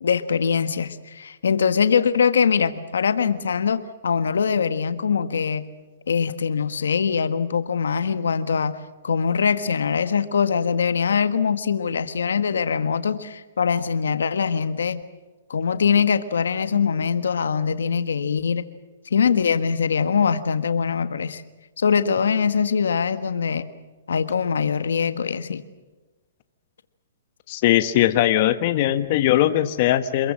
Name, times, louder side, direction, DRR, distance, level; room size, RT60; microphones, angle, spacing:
voice 1, 0.0-5.6 6.1-15.0 15.5-18.6 19.0-21.4 21.8-23.7 24.1-25.6, left 6 dB, 85° left, 11 dB, 1.5 m, -22 dB
voice 2, 27.5-30.3, left 13 dB, 45° left, 10 dB, 1.3 m, -20 dB
27.0 x 22.0 x 7.5 m, 1.2 s
hypercardioid pair, 145°, 0 cm